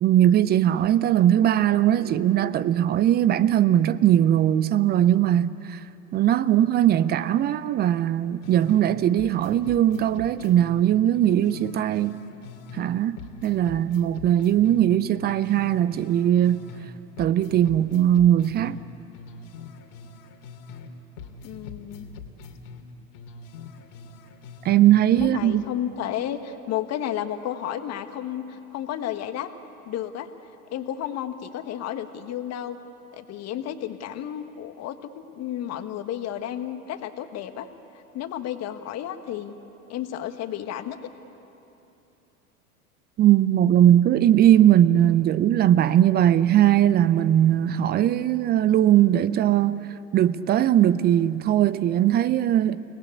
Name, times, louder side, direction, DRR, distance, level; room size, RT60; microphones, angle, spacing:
voice 1, 0.0-5.8 6.1-12.2 12.7-16.7 17.2-18.8 24.6-25.6 43.2-49.8 50.1-52.8, right 11 dB, 25° right, 0.5 m, -20 dB
call and response, 8.4-8.9 9.2-12.9 13.2-16.9 17.2-20.9 21.2-24.9 25.2-25.3, left 4 dB, 55° left, 2.5 m, -43 dB
voice 2, 21.4-22.1 25.2-29.5 29.8-30.3 30.7-32.8 33.1-37.7 38.1-39.6 39.9-41.0, left 11 dB, 35° left, 1.5 m, -32 dB
29.5 x 19.0 x 8.4 m
hypercardioid pair, 95°, 44 cm